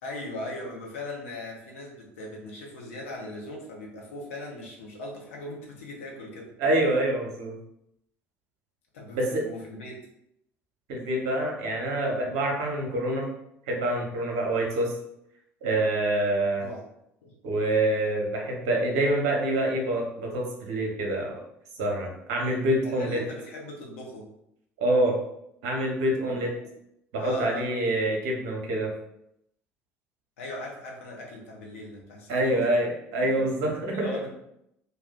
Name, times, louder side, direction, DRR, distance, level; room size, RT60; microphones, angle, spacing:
voice 1, 0.0-6.7 8.9-10.0 16.6-16.8 17.2-17.3 22.8-24.3 26.3-26.4 27.2-27.7 30.4-32.8 33.2-33.4 33.9-34.3, left 2 dB, 70° left, -2 dB, 0.8 m, -39 dB
voice 2, 6.6-7.6 9.1-9.4 10.9-13.3 13.7-14.9 15.6-16.7 17.4-21.3 21.8-23.2 24.8-25.2 25.6-26.5 27.1-28.9 32.3-34.1, right 1 dB, 55° right, 0 dB, 0.8 m, -26 dB
2.6 x 2.2 x 3.6 m, 0.77 s
figure-of-eight pair, 60°, 7 cm